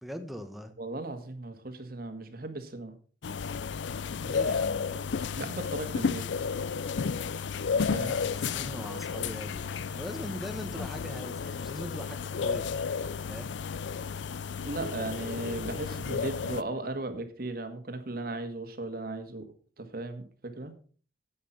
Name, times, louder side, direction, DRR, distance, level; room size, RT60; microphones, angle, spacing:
voice 1, 0.0-0.7 4.2-5.1 7.9-12.7 13.3-13.6, equal, ahead, 7 dB, 1.3 m, -41 dB
voice 2, 0.8-2.9 5.4-6.2 7.7-8.1 14.6-19.5 19.8-20.7, right 2 dB, 55° right, 7 dB, 1.8 m, -36 dB
sound 1, 3.2-16.6, left 5 dB, 80° left, 0.5 m, -32 dB
10.0 x 8.5 x 5.8 m, 0.42 s
head